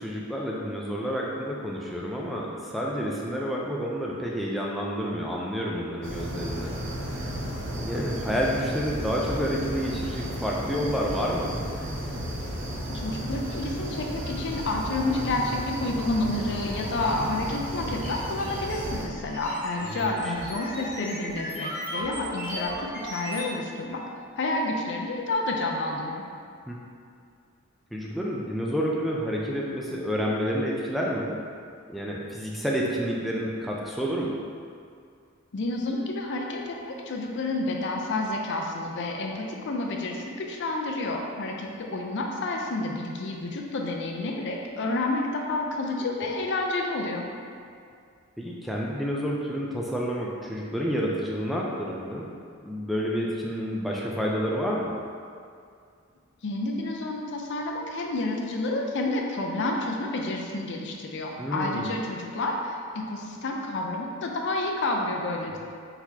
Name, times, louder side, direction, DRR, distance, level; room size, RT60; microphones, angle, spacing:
voice 1, 0.0-6.7 7.1-7.3 7.8-11.6 19.8-20.3 26.7-26.8 27.9-31.4 31.9-34.4 46.0-46.1 48.4-52.3 52.6-54.9 61.4-61.9, equal, ahead, -4 dB, 0.3 m, -29 dB
sound 1, 6.0-19.1, equal, 65° right, 0.7 m, -33 dB
voice 2, 12.9-24.0 24.4-26.2 35.5-47.2 56.4-62.8 63.1-65.6, left 2 dB, 55° left, 1 dB, 0.5 m, -29 dB
sound 2, 18.0-23.5, equal, 35° right, 1.1 m, -37 dB
4.5 x 4.0 x 2.7 m, 2.3 s
head